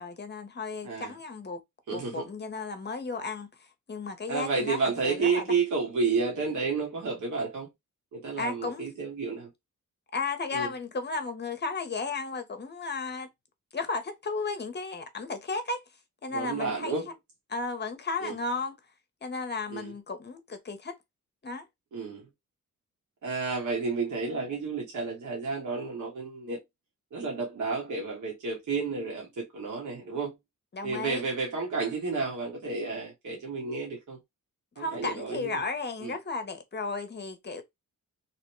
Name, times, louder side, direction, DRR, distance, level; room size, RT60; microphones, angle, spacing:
voice 1, 0.0-1.6 1.9-3.5 3.9-5.5 8.4-8.8 10.1-13.3 13.7-15.8 16.2-16.9 17.5-18.8 19.2-21.0 21.4-21.7 30.7-31.3 34.8-37.6, left 3 dB, 30° left, 0.8 m, -34 dB
voice 2, 1.9-2.2 4.3-7.7 8.1-9.5 10.5-10.7 16.3-17.0 18.2-18.3 19.7-19.9 21.9-22.2 23.2-26.6 27.1-30.3 30.8-34.2 34.8-35.5 36.0-36.1, right 4 dB, 60° right, 1.2 m, -31 dB
2.9 x 2.1 x 3.0 m
cardioid pair, 90°, 33 cm